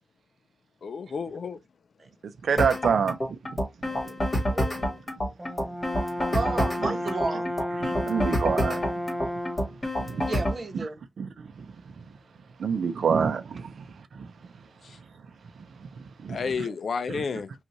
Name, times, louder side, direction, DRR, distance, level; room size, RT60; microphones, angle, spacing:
voice 1, 0.8-1.6 14.8-15.0 16.3-17.5, left 5 dB, 65° left, 0.4 m, -31 dB
voice 2, 2.2-3.2 3.5-3.6 6.8-7.0 7.8-8.8 10.0-10.2 10.7-10.9 11.2-12.0 12.6-14.3 15.8-16.7 17.1-17.2, right 6 dB, 80° right, 0.5 m, -28 dB
sound 1, 2.6-10.6, equal, 25° left, 1.9 m, -28 dB
voice 3, 3.9-4.2 4.5-5.0 6.3-7.5 10.1-11.0 16.4-16.8, right 3 dB, 40° right, 1.0 m, -33 dB
Brass instrument, 5.4-9.8, equal, 20° right, 0.6 m, -32 dB
5.2 x 2.4 x 3.0 m
wide cardioid pair, 170°, 0 cm